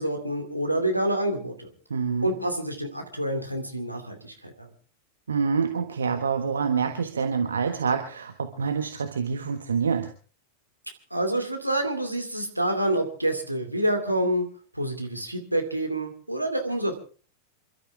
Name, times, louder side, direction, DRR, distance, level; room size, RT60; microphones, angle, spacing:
voice 1, 0.0-1.7 2.2-4.7 11.1-14.5 14.7-16.9, right 1 dB, 90° right, 4 dB, 2.7 m, -27 dB
voice 2, 1.9-2.3 5.3-10.1, right 5 dB, 70° right, 6 dB, 1.4 m, -26 dB
28.0 x 12.5 x 3.5 m, 0.38 s
figure-of-eight pair, 90°, 0 cm